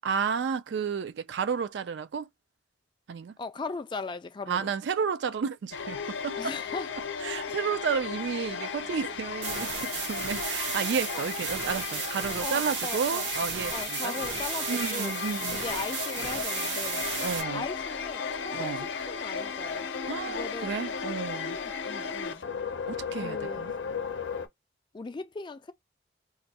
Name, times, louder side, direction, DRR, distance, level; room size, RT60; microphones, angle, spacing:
voice 1, 0.0-2.3 3.1-3.4 4.5-6.6 7.2-14.1 14.7-15.6 17.2-17.6 18.5-18.9 20.1-21.6 22.9-23.7, right 6 dB, 70° right, 0.3 m, -32 dB
voice 2, 3.4-4.7 6.4-6.9 11.1-11.3 12.4-15.1 15.5-17.1 17.5-19.9 20.3-20.8 21.6-22.5 23.2-23.7 24.9-25.7, left 3 dB, 25° left, 0.3 m, -39 dB
sound 1, 5.7-24.5, left 6 dB, 85° left, 0.5 m, -35 dB
sound 2, 9.4-17.4, right 5 dB, 90° right, 0.9 m, -34 dB
2.6 x 2.3 x 4.0 m
head